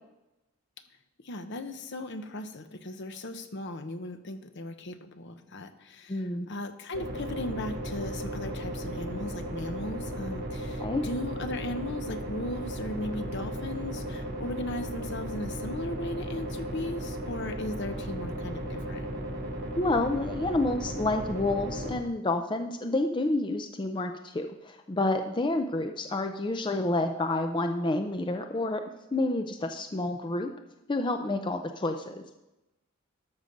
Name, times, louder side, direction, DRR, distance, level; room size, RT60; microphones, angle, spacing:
voice 1, 1.2-19.1, left 1 dB, 55° left, 9 dB, 0.8 m, -37 dB
voice 2, 6.1-6.5 10.8-11.0 19.7-28.8 29.1-30.5 30.9-32.2, left 2 dB, 20° left, 6 dB, 0.5 m, -29 dB
sound 1, 6.9-22.0, right 1 dB, 45° right, 2.5 m, -35 dB
13.0 x 6.2 x 5.2 m, 0.97 s
head